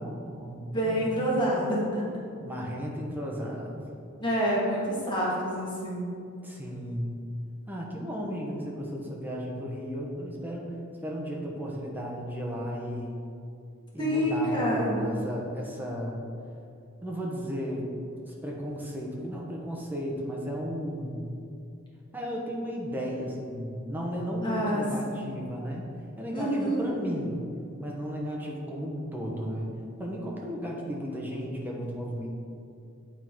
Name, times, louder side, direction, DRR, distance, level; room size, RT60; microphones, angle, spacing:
voice 1, 0.0-1.7 2.4-3.8 6.4-7.2 7.7-10.7 11.0-13.1 13.9-16.2 17.0-17.9 18.3-21.2 22.1-25.9 26.2-27.4 27.8-29.7 30.0-32.4, equal, 10° right, -3 dB, 1.0 m, -34 dB
voice 2, 0.7-2.0 4.2-6.1 14.0-15.1 24.4-25.2 26.3-27.0, equal, 20° left, -6 dB, 1.6 m, -27 dB
8.7 x 3.8 x 4.5 m, 2.5 s
head